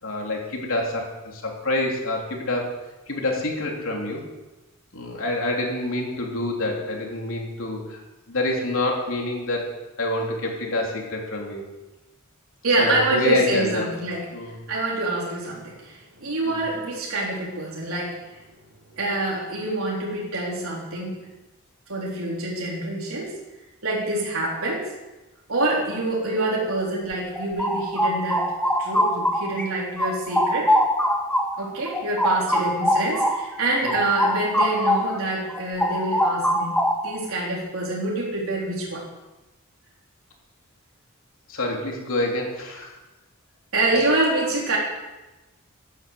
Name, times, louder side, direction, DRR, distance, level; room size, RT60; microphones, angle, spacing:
voice 1, 0.0-2.7 3.1-4.2 4.9-8.0 8.3-11.6 12.8-13.9 14.3-14.6 16.4-16.6 33.8-34.0 41.5-42.9 43.9-44.0, left 2 dB, 70° left, 0 dB, 3.6 m, -27 dB
voice 2, 12.6-14.3 14.7-18.4 19.0-21.3 21.9-23.3 23.8-24.9 25.5-28.5 28.8-30.8 31.6-39.1 43.7-44.8, right 2 dB, 85° right, -4 dB, 3.7 m, -26 dB
sound 1, 27.1-29.7 30.0-35.2 35.5-37.2, equal, 5° left, 1.4 m, -23 dB
13.0 x 11.5 x 7.9 m, 1.1 s
head